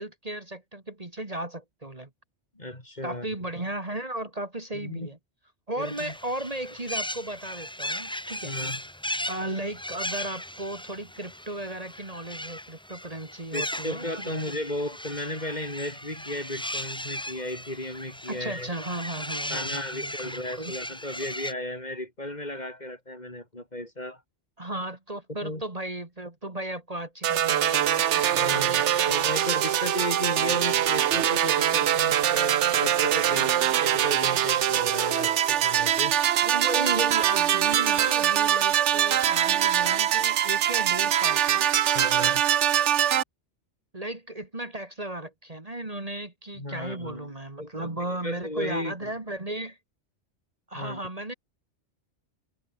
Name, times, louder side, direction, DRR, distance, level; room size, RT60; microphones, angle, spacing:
voice 1, 0.0-2.1 3.0-5.2 5.7-8.5 9.3-14.4 18.3-20.7 24.6-28.6 36.4-41.7 43.9-49.8 50.7-51.3, right 1 dB, 35° right, 2.5 m, -35 dB
voice 2, 2.5-3.5 4.7-5.1 5.8-6.1 8.4-8.8 13.5-18.7 19.5-24.2 25.4-25.6 28.3-36.2 41.9-42.4 46.5-48.0 48.2-49.1 50.7-51.0, left 1 dB, 40° left, 5.2 m, -35 dB
sound 1, 5.8-21.5, left 1 dB, 5° left, 1.2 m, -37 dB
sound 2, 27.2-43.2, right 10 dB, 80° right, 1.1 m, -23 dB
omnidirectional pair, 1.2 m